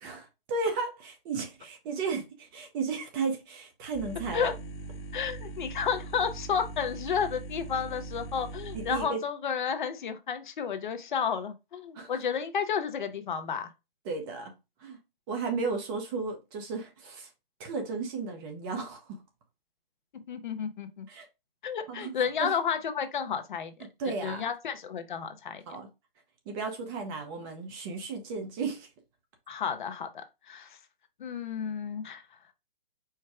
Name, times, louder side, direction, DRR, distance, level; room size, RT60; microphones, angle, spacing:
voice 1, 0.0-4.5 8.7-9.2 11.9-12.1 14.0-14.5 14.8-15.0 15.3-17.3 17.6-19.2 21.1-21.3 21.9-22.1 22.4-22.5 24.0-24.4 25.7-25.9 26.5-28.9, right 4 dB, 25° right, 0.7 m, -34 dB
sound 1, 3.9-9.1, right 3 dB, 35° left, 1.0 m, -41 dB
voice 2, 5.1-13.7 20.1-21.1 21.6-23.7 24.2-25.6 29.5-30.8 31.2-32.2, left 7 dB, 55° left, 0.8 m, -32 dB
4.6 x 2.1 x 4.6 m
hypercardioid pair, 140°, 29 cm